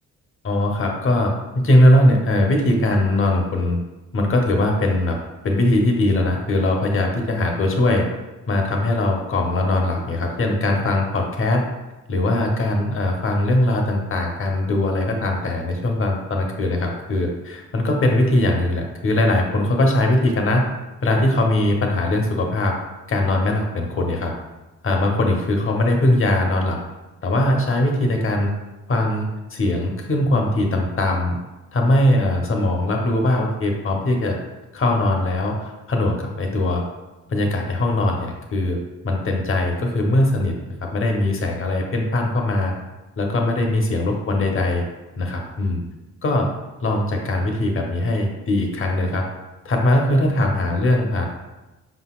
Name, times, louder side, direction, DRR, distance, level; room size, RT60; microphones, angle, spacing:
voice 1, 0.4-3.8 4.1-5.2 5.4-8.0 8.5-11.6 12.1-20.6 21.0-22.7 23.1-24.3 24.8-26.8 27.2-28.5 28.9-31.4 31.7-34.4 34.7-36.8 37.3-38.8 39.0-40.5 40.8-42.7 43.2-44.8 45.2-45.8 46.2-46.5 46.8-49.2 49.6-51.3, left 1 dB, 45° left, 1 dB, 1.0 m, -20 dB
5.1 x 4.0 x 2.4 m, 1.1 s
cardioid pair, 90°, 30 cm